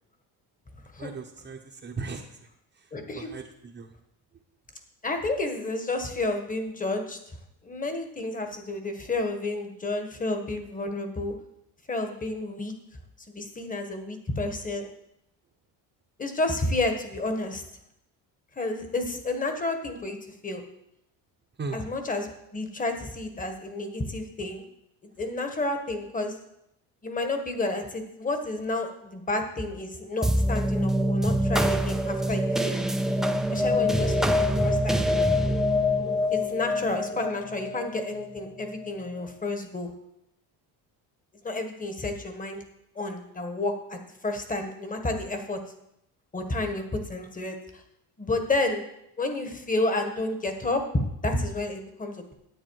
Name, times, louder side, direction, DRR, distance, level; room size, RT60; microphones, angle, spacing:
voice 1, 1.0-2.5 2.7-3.9 21.6-21.8 33.7-33.9, right 4 dB, 25° right, -1 dB, 1.0 m, -38 dB
voice 2, 2.9-3.3 5.0-7.2 7.6-11.3 11.9-12.7 13.3-14.9 16.2-17.6 18.5-20.6 21.7-22.3 22.5-24.6 25.2-26.4 27.0-32.8 33.5-35.0 36.3-39.9 41.4-42.6 42.9-45.6 46.3-47.8 48.2-48.8 49.2-52.3, left 2 dB, 20° left, 6 dB, 1.5 m, -30 dB
sound 1, 30.2-38.9, left 1 dB, ahead, 0.5 m, -25 dB
10.5 x 8.6 x 4.8 m, 0.80 s
cardioid pair, 115°, 41 cm